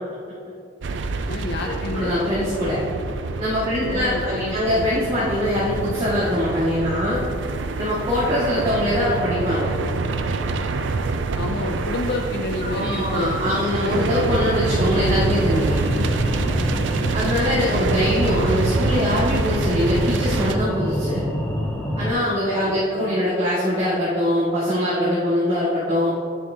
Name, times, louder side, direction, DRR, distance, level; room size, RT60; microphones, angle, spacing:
Morphagene Carwash Reel, 0.8-20.6, right 3 dB, 70° right, 0.4 m, -26 dB
voice 1, 1.3-2.2 3.9-4.9 11.3-13.4 13.9-14.0 22.9-23.2, left 2 dB, 55° left, 1 dB, 0.5 m, -29 dB
voice 2, 1.9-2.8 3.4-7.2 7.8-9.7 12.6-15.8 17.1-21.2 22.0-26.2, left 1 dB, 30° right, -11 dB, 1.9 m, -22 dB
sound 1, 14.6-22.1, equal, 10° left, 0.8 m, -27 dB
10.5 x 7.3 x 2.8 m, 2.4 s
head